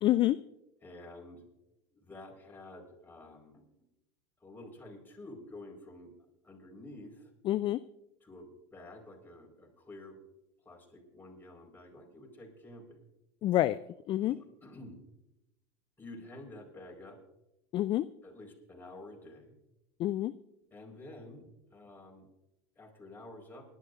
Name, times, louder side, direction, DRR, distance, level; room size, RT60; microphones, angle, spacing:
voice 1, 0.0-0.4 7.4-7.8 13.4-13.8 14.1-14.4 17.7-18.1 20.0-20.3, left 14 dB, 35° left, 16 dB, 0.4 m, -27 dB
voice 2, 0.8-1.5 1.9-3.6 4.4-6.1 6.4-7.3 8.2-10.2 10.6-13.0 14.2-15.0 16.0-17.2 18.2-19.6 20.7-22.3 22.8-23.6, left 1 dB, 15° left, 0 dB, 4.5 m, -50 dB
28.0 x 11.5 x 2.5 m, 0.92 s
hypercardioid pair, 90°, 15 cm